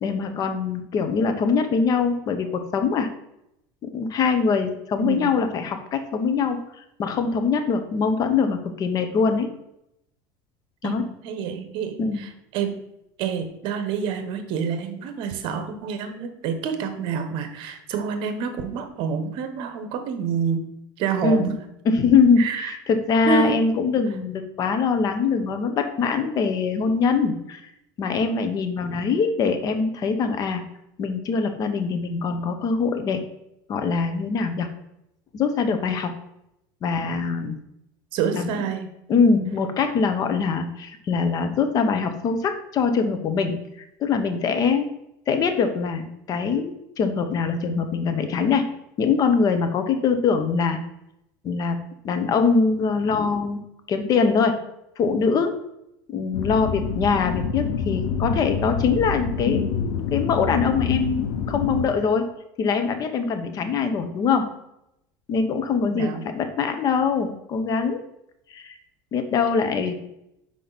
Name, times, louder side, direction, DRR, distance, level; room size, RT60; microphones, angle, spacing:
voice 1, 0.0-3.1 3.8-6.6 7.0-9.5 10.8-11.1 12.0-12.2 21.2-21.5 21.8-27.7 28.0-30.6 31.0-33.2 33.7-34.7 35.3-36.1 36.8-37.6 38.3-38.5 39.1-43.5 44.0-44.9 45.3-48.7 49.0-50.8 51.4-51.8 52.0-53.6 53.9-54.6 55.0-55.5 56.1-62.3 62.6-64.4 65.3-68.0 68.5-68.8 69.1-69.9, left 5 dB, 40° left, 8 dB, 0.8 m, -23 dB
voice 2, 5.0-5.3 10.8-12.7 13.2-20.6 21.0-21.5 22.4-22.7 23.3-23.6 38.1-38.9 65.9-66.2, right 7 dB, 60° right, 8 dB, 1.0 m, -28 dB
sound 1, 56.3-61.9, left 6 dB, 80° left, 0.8 m, -27 dB
6.0 x 4.9 x 4.0 m, 0.82 s
supercardioid pair, 120°, 10 cm